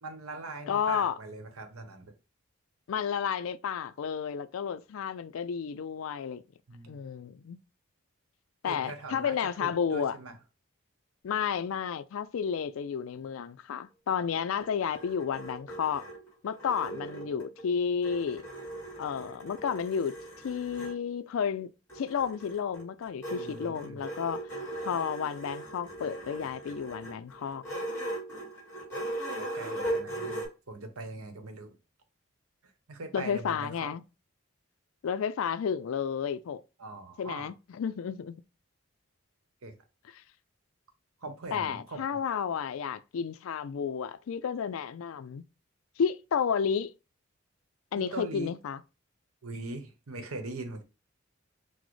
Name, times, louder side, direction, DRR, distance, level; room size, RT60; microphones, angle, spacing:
voice 1, 0.0-2.1 6.7-7.0 8.6-9.3 9.6-10.3 16.8-17.5 23.3-24.0 29.4-31.8 32.6-33.9 36.8-37.5 39.6-39.8 41.2-42.0 48.0-48.5 49.4-50.8, right 2 dB, 85° right, 0.9 m, -41 dB
voice 2, 0.7-1.1 2.9-6.4 6.9-7.6 8.6-10.2 11.2-16.1 16.4-18.4 19.0-20.1 20.4-21.7 22.0-24.4 24.8-27.6 33.1-34.0 35.0-36.6 37.2-38.4 41.5-45.4 46.0-46.9 47.9-48.8, left 7 dB, 75° left, 0.3 m, -32 dB
sound 1, 14.3-17.7 18.0-21.0 21.9-30.5, right 1 dB, 15° left, 1.6 m, -39 dB
6.1 x 2.0 x 3.1 m
head